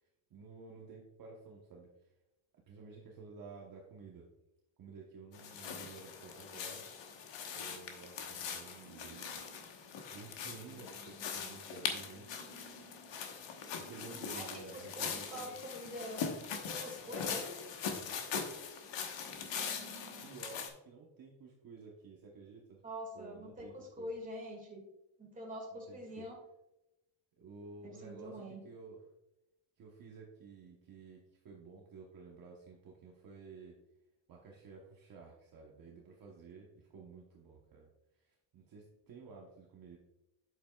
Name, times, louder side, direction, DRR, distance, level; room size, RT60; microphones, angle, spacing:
voice 1, 0.0-2.1 2.7-4.2 4.8-6.9 7.6-9.4 10.1-12.3 13.8-15.6 20.2-22.8 23.1-24.1 25.9-26.3 27.4-29.0 29.8-33.8 34.3-37.9 38.1-40.0, right 4 dB, 45° right, -2 dB, 1.1 m, -52 dB
sound 1, 5.3-20.7, left 6 dB, 60° left, 1.2 m, -42 dB
sound 2, 8.8-20.3, equal, 30° left, 1.7 m, -59 dB
voice 2, 14.7-16.2 16.6-17.5 22.8-24.8 25.2-26.4 27.8-28.6, equal, 15° right, -1 dB, 2.0 m, -45 dB
8.1 x 7.6 x 2.3 m, 0.93 s
cardioid pair, 165°, 49 cm